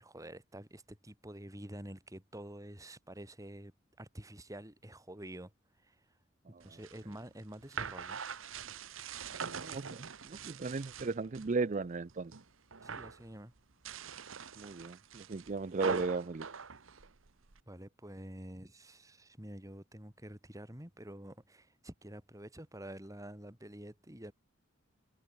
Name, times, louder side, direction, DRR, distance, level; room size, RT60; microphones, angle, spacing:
voice 1, 0.0-3.7 4.0-5.5 5.8-6.0 6.6-8.2 12.8-13.5 17.7-24.3, right 1 dB, 15° right, 3.5 m, -48 dB
sound 1, 6.6-11.5 11.9-12.4 12.7-13.2 13.7-17.6, right 6 dB, 75° right, 1.2 m, -43 dB
voice 2, 9.5-12.3 14.6-16.5, right 4 dB, 40° right, 0.5 m, -36 dB
head